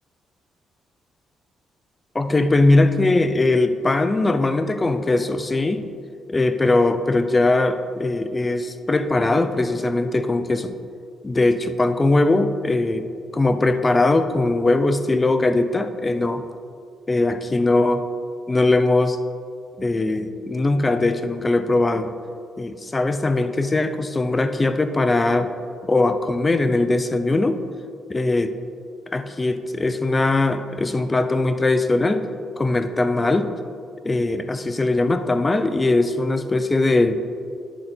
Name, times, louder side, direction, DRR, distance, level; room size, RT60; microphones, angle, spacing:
voice 1, 2.1-5.8 6.3-10.8 11.2-13.0 13.3-16.4 17.1-18.0 18.5-19.2 19.8-22.1 22.6-25.5 25.8-27.6 28.1-28.5 29.1-32.3 32.6-33.5 34.0-37.2, left 2 dB, 20° left, 10 dB, 0.5 m, -20 dB
10.0 x 4.0 x 4.4 m, 2.3 s
cardioid pair, 90°, 0 cm